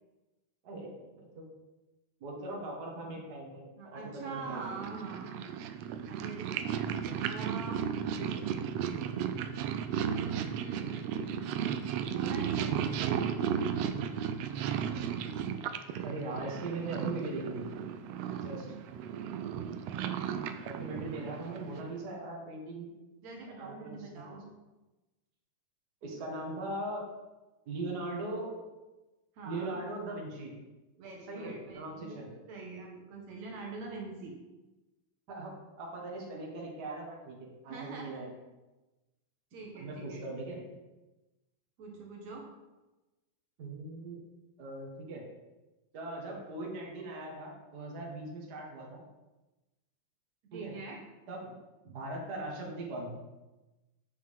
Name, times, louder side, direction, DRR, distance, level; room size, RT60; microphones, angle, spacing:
voice 1, 0.6-1.5 2.2-4.7 7.0-7.2 8.3-8.4 16.0-17.7 18.4-18.7 20.6-22.9 23.5-24.4 26.0-27.1 27.7-28.5 29.5-30.5 31.3-32.3 35.3-38.3 39.7-40.6 43.6-44.2 44.6-45.2 45.9-49.0 50.5-50.8 51.3-51.5 51.8-53.2, right 2 dB, 40° right, -2 dB, 1.8 m, -40 dB
voice 2, 3.8-5.4 6.1-6.7 7.2-7.9 9.9-11.5 12.1-13.6 23.2-24.5 29.3-29.8 31.0-34.3 37.7-38.3 39.5-40.2 41.8-42.5 50.5-51.0, right 4 dB, 70° right, -1 dB, 2.4 m, -44 dB
Purr, 4.3-22.0, right 8 dB, 85° right, 1.4 m, -35 dB
8.6 x 7.4 x 3.7 m, 1.1 s
omnidirectional pair, 3.5 m